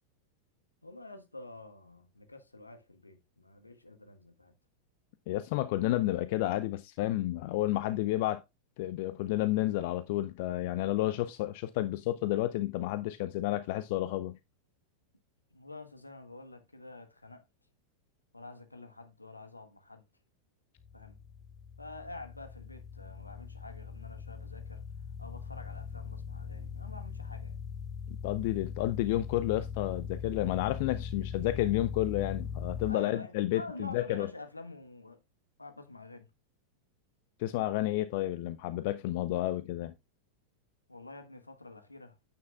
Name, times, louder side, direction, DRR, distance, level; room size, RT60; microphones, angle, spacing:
voice 1, 0.8-4.5 15.5-17.4 18.3-20.0 20.9-21.2 21.8-27.6 32.8-35.2 35.6-36.3 40.9-42.2, left 2 dB, 85° left, 1.3 m, -48 dB
voice 2, 5.3-8.4 8.8-14.4 28.1-34.3 37.4-39.9, left 15 dB, 50° left, 0.5 m, -31 dB
sound 1, 20.8-32.9, left 6 dB, 25° left, 1.0 m, -40 dB
9.3 x 8.6 x 2.4 m
figure-of-eight pair, 90°, 0 cm